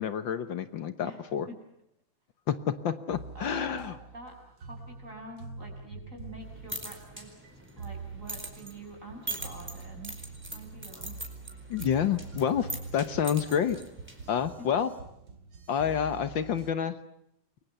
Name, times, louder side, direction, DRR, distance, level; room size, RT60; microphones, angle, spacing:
voice 1, 0.0-1.5 2.5-4.0 11.7-13.8 14.3-14.9 15.7-17.0, left 8 dB, 70° left, 11 dB, 1.9 m, -29 dB
sound 1, 3.1-16.7, right 4 dB, 90° right, 2.8 m, -45 dB
voice 2, 3.4-4.3 4.6-10.1 10.5-11.2 14.6-14.7, right 2 dB, 40° right, 2 dB, 6.9 m, -46 dB
sound 2, 6.4-14.4, right 2 dB, 5° right, 4.4 m, -43 dB
29.5 x 23.0 x 6.9 m, 0.80 s
omnidirectional pair, 2.2 m